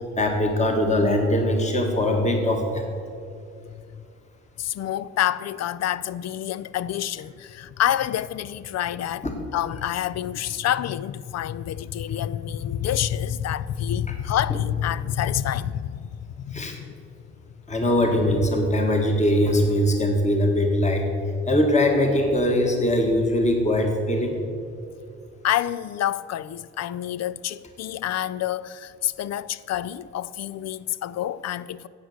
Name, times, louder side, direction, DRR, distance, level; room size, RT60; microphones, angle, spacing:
voice 1, 0.0-2.8 16.5-16.8 17.7-21.1 21.5-24.4, left 1 dB, 25° left, 1.7 m, -21 dB
voice 2, 3.7-4.0 4.6-9.3 9.5-17.0 25.4-31.9, left 11 dB, 60° left, 0.5 m, -28 dB
11.0 x 8.1 x 8.0 m
cardioid pair, 90°, 30 cm